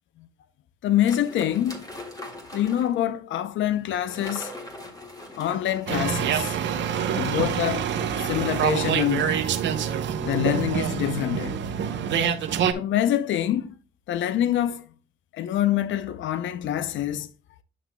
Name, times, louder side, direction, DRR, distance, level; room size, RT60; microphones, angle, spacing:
voice 1, 0.8-1.9 2.5-4.5 5.4-6.6 7.1-7.9 8.2-9.4 10.2-11.6 12.7-13.7 14.1-14.8 15.3-17.3, left 11 dB, 75° left, 0.6 m, -25 dB
sound 1, 1.0-3.0 3.9-9.3, left 1 dB, 20° left, 1.9 m, -42 dB
sound 2, 5.9-12.7, right 8 dB, 65° right, 0.9 m, -26 dB
9.3 x 5.9 x 2.2 m
cardioid pair, 90°, 20 cm